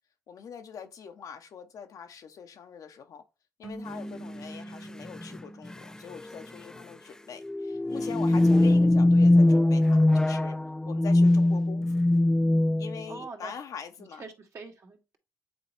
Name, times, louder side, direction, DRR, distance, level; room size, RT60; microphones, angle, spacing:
voice 1, 0.3-3.2 3.6-10.6 10.9-12.0 12.8-14.2, left 7 dB, 65° left, 0.9 m, -43 dB
sound 1, 3.6-7.0, right 1 dB, 10° right, 1.1 m, -44 dB
sound 2, 4.0-4.1 5.1-5.4 5.6-5.7 6.2-6.4 7.4-13.1, left 1 dB, 10° left, 0.4 m, -21 dB
voice 2, 13.1-13.6 14.0-15.2, right 4 dB, 50° right, 2.0 m, -44 dB
8.1 x 4.0 x 3.4 m
supercardioid pair, 65°, 7 cm